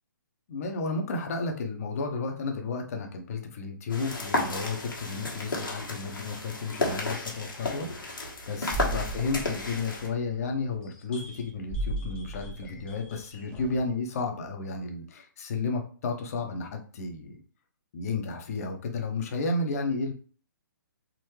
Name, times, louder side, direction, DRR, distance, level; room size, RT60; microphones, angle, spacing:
voice 1, 0.5-17.4 17.9-20.1, left 3 dB, 45° left, 4 dB, 0.7 m, -32 dB
sound 1, 3.9-10.1, left 2 dB, 90° left, 1.2 m, -33 dB
sound 2, 7.5-7.7 8.7-10.3 11.1-11.4 11.7-13.9, right 1 dB, 10° left, 0.7 m, -35 dB
3.6 x 2.0 x 3.1 m, 0.41 s
hypercardioid pair, 145°, 11 cm